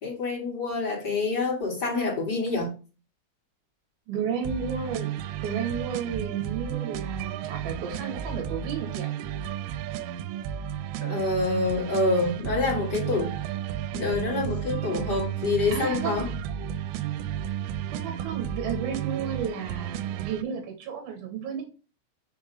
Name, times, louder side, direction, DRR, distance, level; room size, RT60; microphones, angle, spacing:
voice 1, 0.0-2.7 11.0-13.3 13.9-16.3, left 3 dB, 35° left, 1.8 m, -27 dB
voice 2, 4.1-5.1 5.4-9.1 15.7-16.2 17.9-21.6, right 7 dB, 60° right, 2.9 m, -32 dB
sound 1, 4.4-20.4, right 10 dB, 85° right, 3.2 m, -33 dB
6.8 x 3.5 x 5.5 m
omnidirectional pair, 5.7 m